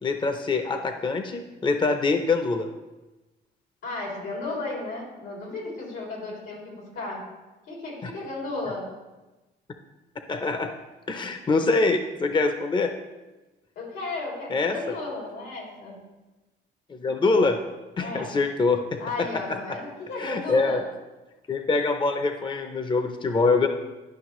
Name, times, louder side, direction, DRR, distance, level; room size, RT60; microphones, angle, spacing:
voice 1, 0.0-2.7 8.0-8.1 10.3-10.7 11.1-12.9 14.5-15.0 16.9-17.6 18.0-19.8 20.2-20.8 21.5-23.7, left 3 dB, 25° left, 7 dB, 0.6 m, -24 dB
voice 2, 3.8-7.2 7.7-8.9 13.7-16.0 18.0-18.3 19.0-20.9, left 2 dB, 90° left, -2 dB, 2.9 m, -34 dB
11.5 x 5.6 x 3.1 m, 1.1 s
cardioid pair, 90°, 20 cm